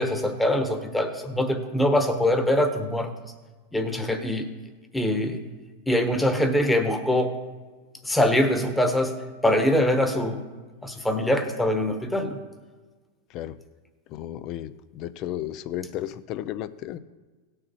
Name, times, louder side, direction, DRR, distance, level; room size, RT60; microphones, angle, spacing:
voice 1, 0.0-3.3 3.7-4.5 4.9-5.4 5.9-7.4 8.0-10.4 10.8-12.4, left 1 dB, 5° left, 6 dB, 1.2 m, -23 dB
voice 2, 14.1-17.0, left 12 dB, 45° left, 15 dB, 0.5 m, -33 dB
17.0 x 6.5 x 4.2 m, 1.3 s
hypercardioid pair, 120°, 0 cm